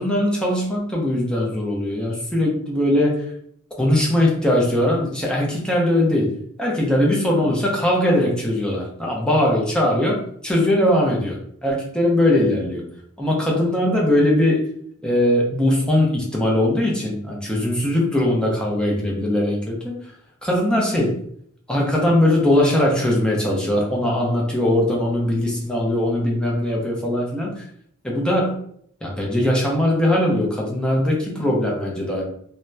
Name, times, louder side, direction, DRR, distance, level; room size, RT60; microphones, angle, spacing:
voice 1, 0.0-3.3 3.8-6.3 6.6-10.2 10.4-12.8 13.2-14.7 15.0-19.9 20.4-21.1 21.7-27.6 28.0-28.6 29.0-32.2, left 1 dB, 5° left, -3 dB, 0.5 m, -20 dB
2.7 x 2.0 x 2.2 m, 0.65 s
head